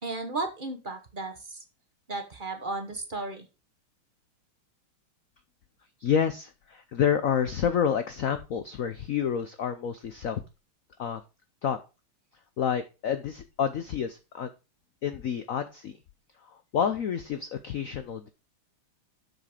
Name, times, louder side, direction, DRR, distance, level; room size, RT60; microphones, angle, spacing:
voice 1, 0.0-1.6 2.1-3.5, right 3 dB, 30° right, 5 dB, 1.1 m, -34 dB
voice 2, 6.0-10.4 11.0-11.2 11.6-11.8 12.6-14.5 15.0-16.0 16.4-18.3, left 8 dB, 80° left, 10 dB, 0.7 m, -29 dB
7.2 x 6.6 x 5.0 m, 0.29 s
omnidirectional pair, 2.3 m